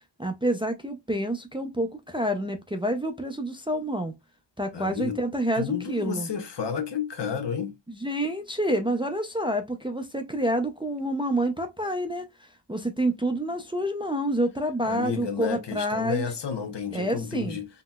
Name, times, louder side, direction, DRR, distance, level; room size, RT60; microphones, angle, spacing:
voice 1, 0.2-4.1 4.6-6.3 7.9-16.3 16.9-17.6, right 1 dB, 10° right, 0.4 m, -28 dB
voice 2, 4.7-5.2 5.6-7.7 14.9-17.7, left 7 dB, 65° left, 0.8 m, -31 dB
3.9 x 2.0 x 2.2 m
wide cardioid pair, 90°, 45 cm